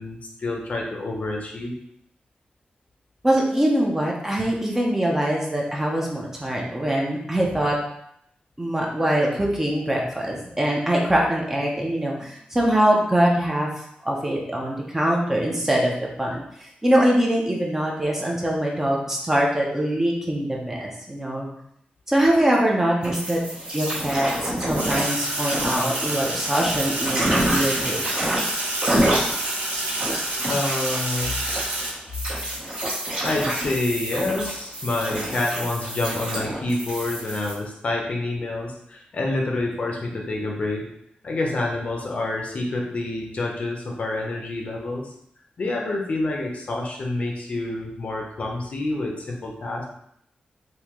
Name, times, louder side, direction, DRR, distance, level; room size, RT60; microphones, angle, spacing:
voice 1, 0.0-1.7 30.5-31.4 33.2-40.9 41.2-45.1 45.6-49.8, left 2 dB, 45° left, -1 dB, 0.6 m, -27 dB
voice 2, 3.2-7.8 8.6-13.7 14.0-21.5 22.1-23.4 23.7-28.0, right 1 dB, 15° right, -2 dB, 0.6 m, -23 dB
sound 1, 23.0-37.5, right 1 dB, 35° right, 1.0 m, -28 dB
Sink (filling or washing), 24.8-31.9, right 1 dB, 75° right, 0.8 m, -28 dB
3.6 x 2.6 x 3.0 m, 0.74 s
wide cardioid pair, 175°, 3 cm